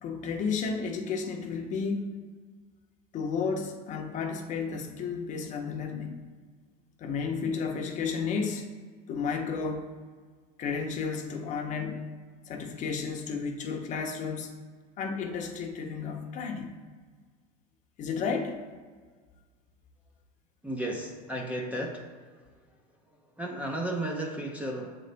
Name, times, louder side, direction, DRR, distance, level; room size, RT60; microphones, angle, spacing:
voice 1, 0.0-2.1 3.1-6.2 7.0-8.6 9.1-9.9 10.6-12.1 12.5-14.5 15.0-16.7 18.0-18.5, left 5 dB, 35° left, 3 dB, 0.8 m, -32 dB
voice 2, 20.6-22.1 23.4-24.9, right 1 dB, 5° right, 0 dB, 0.6 m, -33 dB
7.6 x 3.8 x 3.3 m, 1.5 s
supercardioid pair, 135°, 21 cm